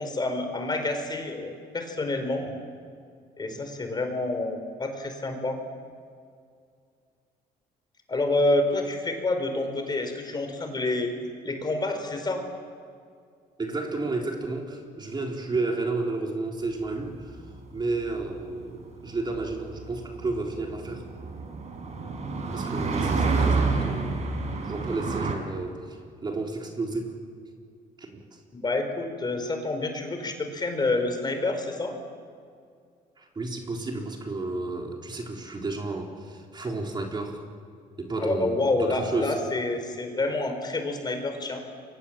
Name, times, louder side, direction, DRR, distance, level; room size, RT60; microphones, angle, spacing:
voice 1, 0.0-2.5 3.4-5.6 8.1-11.1 11.4-12.4 28.5-31.9 38.2-41.6, left 2 dB, 25° left, 5 dB, 4.8 m, -28 dB
voice 2, 13.6-17.4 17.7-21.0 22.5-24.4 24.6-27.1 28.0-28.2 33.2-37.4 38.0-39.4, right 3 dB, 25° right, 1 dB, 3.9 m, -32 dB
sound 1, 16.9-25.3, right 4 dB, 40° right, 5.4 m, -29 dB
29.0 x 24.5 x 7.6 m, 2.2 s
cardioid pair, 110°, 17 cm